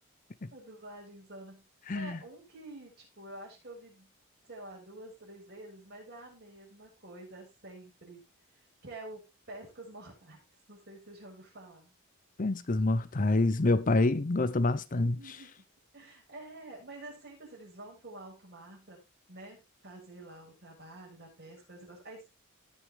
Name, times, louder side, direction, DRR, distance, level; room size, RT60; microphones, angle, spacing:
voice 1, 0.5-1.6 1.9-4.1 4.4-8.2 8.6-9.2 9.5-11.9 14.9-15.5 15.9-19.0 19.3-22.3, right 2 dB, 50° right, 6.4 m, -48 dB
voice 2, 1.9-2.2 12.4-15.2, left 2 dB, 40° left, 0.6 m, -27 dB
18.0 x 6.4 x 3.6 m
head